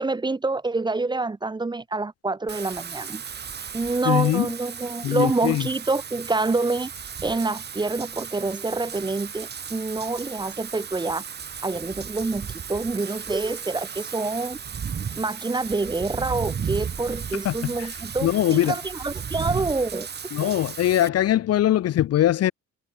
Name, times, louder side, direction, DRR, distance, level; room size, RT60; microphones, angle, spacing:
voice 1, 0.0-3.2 3.7-6.9 7.2-11.2 11.6-14.6 15.2-20.1 20.4-20.5, right 3 dB, 15° right, 0.9 m, -27 dB
Wind / Rain, 2.5-21.1, right 7 dB, 35° right, 1.5 m, -35 dB
voice 2, 4.1-4.5 5.0-5.6 17.4-17.5 18.2-18.7 20.3-22.5, left 12 dB, 55° left, 0.8 m, -21 dB
cardioid pair, 135°, 30 cm